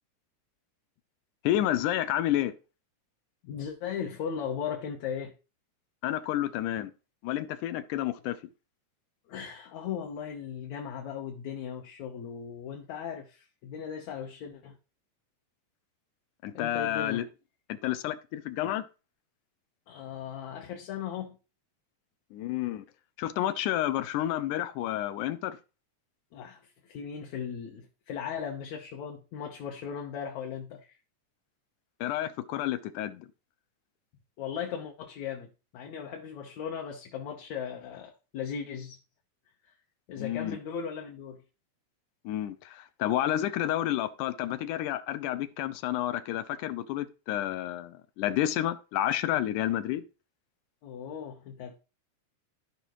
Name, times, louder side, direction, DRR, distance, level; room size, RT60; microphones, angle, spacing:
voice 1, 1.4-2.6 6.0-6.9 7.2-8.4 16.4-17.3 17.7-18.8 22.3-22.9 23.2-25.6 32.0-33.3 40.2-40.6 42.3-50.0, left 13 dB, 90° left, 2.3 m, -30 dB
voice 2, 3.4-5.3 9.3-14.8 16.5-17.2 19.9-21.4 26.3-31.0 34.4-39.0 40.1-41.4 50.8-51.7, left 7 dB, 70° left, 2.3 m, -37 dB
14.5 x 5.1 x 3.1 m
omnidirectional pair, 3.5 m